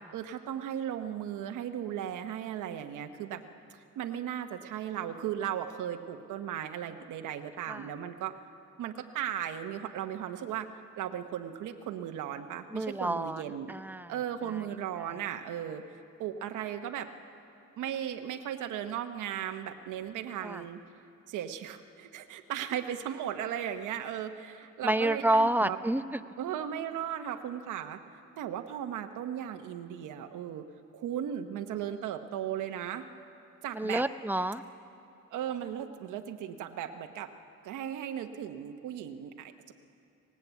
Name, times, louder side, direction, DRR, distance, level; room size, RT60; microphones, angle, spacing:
voice 1, 0.1-3.4 3.7-8.3 8.8-10.7 11.0-13.7 14.1-15.8 16.2-17.1 17.8-20.8 21.3-25.8 26.4-28.0 28.4-30.6 30.9-33.1 33.6-34.0 35.3-37.3 37.6-39.7, right 10 dB, 85° right, 6 dB, 1.0 m, -36 dB
voice 2, 12.7-13.4 13.7-14.1 14.5-14.6 15.0-15.1 20.4-20.6 24.8-26.3 33.7-34.6, right 1 dB, 5° right, 11 dB, 0.7 m, -29 dB
19.0 x 19.0 x 8.2 m, 2.6 s
cardioid pair, 90°, 30 cm